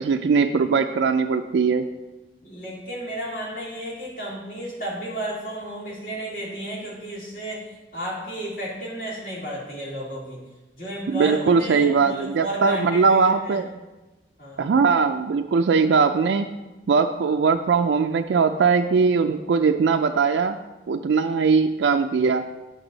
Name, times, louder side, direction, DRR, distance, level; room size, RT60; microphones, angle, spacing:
voice 1, 0.0-1.9 11.1-13.7 14.6-16.5 16.9-20.6 20.9-22.5, right 5 dB, 90° right, 5 dB, 0.4 m, -20 dB
voice 2, 2.4-10.4 10.8-13.6 14.4-14.7, right 1 dB, 55° left, -4 dB, 2.2 m, -33 dB
7.9 x 6.0 x 3.9 m, 1.1 s
head